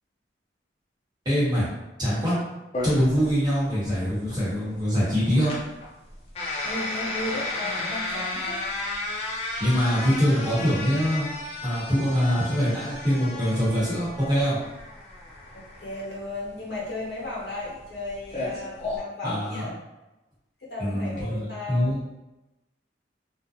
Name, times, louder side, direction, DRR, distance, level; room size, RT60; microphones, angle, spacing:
voice 1, 1.2-1.7 2.0-2.4 2.8-5.5 9.6-11.3 11.6-14.6 19.2-19.7 20.8-22.1, equal, 25° right, -9 dB, 1.0 m, -24 dB
sound 1, 2.7-19.0, left 2 dB, 35° left, 0.5 m, -34 dB
voice 2, 6.6-8.6 15.5-19.7 20.6-21.9, left 2 dB, 65° left, -6 dB, 0.9 m, -35 dB
2.4 x 2.1 x 2.7 m, 1.0 s
head